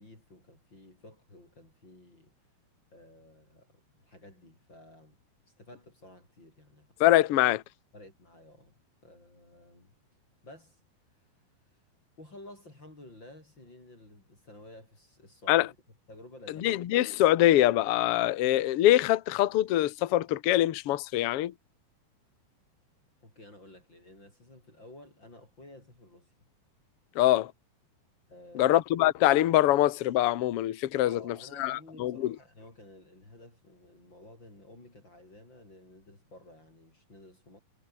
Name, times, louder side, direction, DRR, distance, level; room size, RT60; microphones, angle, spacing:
voice 1, 0.0-2.3 2.9-5.1 5.6-6.9 7.9-8.7 9.0-9.9 10.4-10.8 12.2-15.8 16.1-16.7 23.2-26.3 28.3-28.8 31.0-37.6, left 1 dB, 30° left, 8.0 m, -52 dB
voice 2, 7.0-7.6 15.5-15.7 16.6-21.5 27.1-27.5 28.5-32.3, left 14 dB, 65° left, 1.5 m, -24 dB
omnidirectional pair, 4.3 m